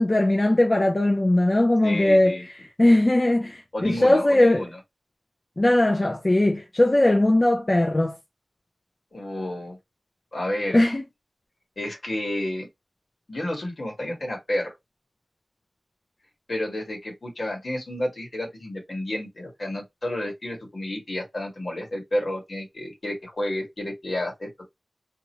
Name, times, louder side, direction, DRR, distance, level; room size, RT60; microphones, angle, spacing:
voice 1, 0.0-2.4 2.8-4.6 5.6-8.2 10.7-11.0, left 1 dB, 40° left, 0.6 m, -19 dB
voice 2, 1.8-2.4 3.7-4.8 9.1-9.8 10.3-10.8 11.8-12.7 13.3-14.7 16.5-24.6, left 1 dB, 70° left, 1.6 m, -31 dB
2.8 x 2.4 x 3.0 m
wide cardioid pair, 55°, 0 cm